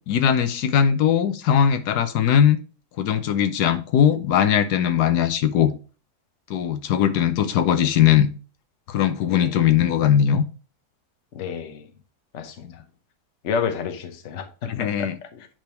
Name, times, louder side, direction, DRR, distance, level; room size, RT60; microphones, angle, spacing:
voice 1, 0.1-2.6 3.0-5.7 6.5-8.3 8.9-10.4 12.6-12.7 14.6-15.2, left 9 dB, 85° left, 1.3 m, -20 dB
voice 2, 9.3-9.6 11.3-11.9 12.3-12.8 13.4-15.5, left 6 dB, 55° left, 1.1 m, -30 dB
9.4 x 3.4 x 4.3 m
omnidirectional pair, 1.7 m